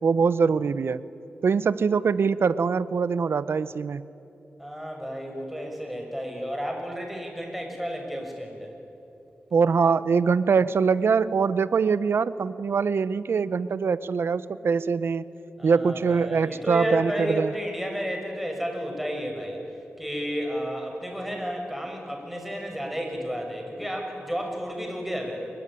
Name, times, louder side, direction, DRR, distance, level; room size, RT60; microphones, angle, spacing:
voice 1, 0.0-1.0 1.4-4.1 9.5-15.2 15.6-17.5, right 5 dB, 75° right, 16 dB, 0.8 m, -23 dB
voice 2, 4.6-8.7 15.6-19.6 20.0-25.5, equal, 5° right, 2 dB, 6.2 m, -32 dB
25.0 x 22.0 x 9.9 m, 2.9 s
wide cardioid pair, 90°, 4 cm